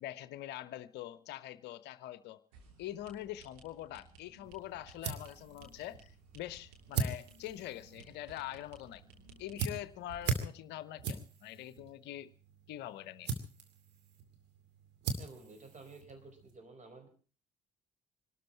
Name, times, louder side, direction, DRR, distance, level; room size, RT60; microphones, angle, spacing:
voice 1, 0.0-2.4 2.8-9.0 9.4-12.3 12.7-13.3, left 13 dB, 60° left, 0.7 m, -44 dB
sound 1, 2.5-10.4, right 3 dB, 75° right, 3.2 m, -58 dB
sound 2, 4.4-16.6, right 5 dB, 60° right, 2.6 m, -41 dB
voice 2, 15.2-17.1, right 3 dB, 35° right, 4.7 m, -52 dB
24.5 x 13.0 x 4.3 m
figure-of-eight pair, 45°, 20 cm